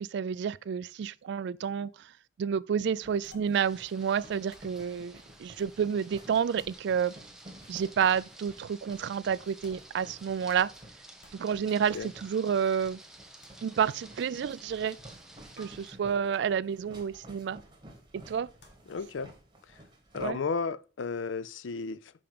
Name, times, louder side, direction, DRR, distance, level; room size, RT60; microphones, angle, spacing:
voice 1, 0.0-1.9 2.4-7.1 7.7-10.7 11.3-13.0 13.6-15.0 15.6-17.6 18.3-18.5 20.2-20.4, right 7 dB, 65° right, 0.3 m, -30 dB
sound 1, 2.8-20.3, right 1 dB, 25° right, 1.7 m, -53 dB
sound 2, 3.2-3.7 4.1-4.2 4.5-4.9 5.6-5.9 6.6-6.9 7.7-8.1 9.6-9.9 10.5-10.9 11.2-11.6 11.9-12.2 13.4-13.5 15.6-15.9 16.3-16.6 17.1-17.3 18.6-18.9, left 1 dB, 65° left, 1.8 m, -57 dB
sound 3, 3.5-15.9, right 1 dB, 5° right, 1.0 m, -53 dB
voice 2, 18.9-19.3 20.1-22.1, left 4 dB, 90° left, 0.5 m, -33 dB
5.7 x 5.4 x 5.0 m
head